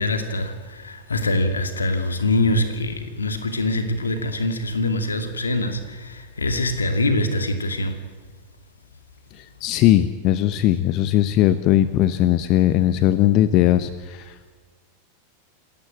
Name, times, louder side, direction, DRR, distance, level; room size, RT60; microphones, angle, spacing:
voice 1, 0.0-8.0, left 2 dB, 75° left, 2.4 m, -24 dB
voice 2, 9.3-14.5, left 13 dB, 40° left, 0.9 m, -19 dB
27.5 x 14.0 x 9.1 m
figure-of-eight pair, 90°, 0 cm